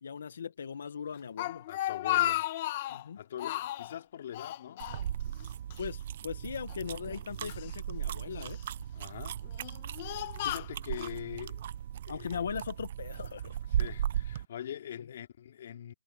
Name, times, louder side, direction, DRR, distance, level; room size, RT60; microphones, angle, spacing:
voice 1, 0.0-1.6 2.9-3.2 5.8-8.6 12.1-13.6, left 7 dB, 70° left, 1.2 m, -39 dB
Speech, 1.1-3.0 3.4-3.9 4.3-5.4 5.7-5.9 6.7-7.7 8.4-8.8 9.4-11.1, left 15 dB, 35° left, 1.6 m, -34 dB
voice 2, 1.7-2.4 3.1-4.9 8.9-9.4 9.9-11.7 12.1-12.4 13.7-15.9, left 10 dB, 50° left, 2.8 m, -43 dB
sound 1, 4.8-14.5, right 10 dB, 45° right, 0.5 m, -37 dB
hypercardioid pair, 165°, 0 cm